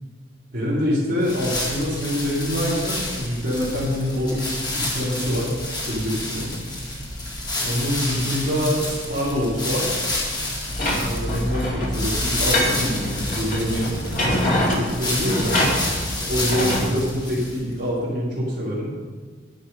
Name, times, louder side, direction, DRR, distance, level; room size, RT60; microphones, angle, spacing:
voice 1, 0.5-4.5 4.7-5.6 5.8-6.5 7.6-9.9 11.0-13.9 14.2-15.6 16.1-18.9, equal, 45° right, -10 dB, 2.9 m, -25 dB
sound 1, 1.2-17.7, left 1 dB, 25° left, 1.9 m, -29 dB
sound 2, 10.7-16.9, left 1 dB, 45° left, 2.7 m, -25 dB
9.9 x 7.9 x 5.3 m, 1.5 s
head